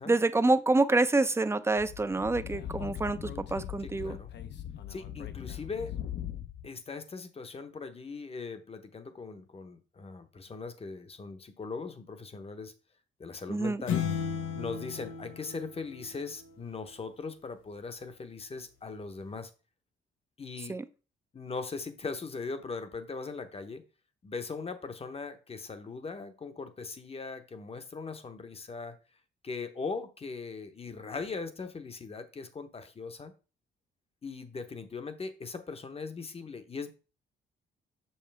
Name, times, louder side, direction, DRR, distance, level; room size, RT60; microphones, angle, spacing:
voice 1, 0.1-4.2 13.5-13.8 20.7-20.8, right 2 dB, 15° right, 0.5 m, -27 dB
Speech / Wind, 1.8-6.7, left 11 dB, 60° left, 0.8 m, -40 dB
voice 2, 3.8-4.3 4.9-5.9 6.6-12.7 13.2-14.0 14.6-19.5 20.4-20.7 21.3-23.8 24.2-29.0 29.4-33.3 34.2-36.9, left 4 dB, 30° left, 0.9 m, -40 dB
sound 1, 13.9-16.5, left 7 dB, 85° left, 1.2 m, -34 dB
6.4 x 5.6 x 3.4 m
cardioid pair, 90°, 20 cm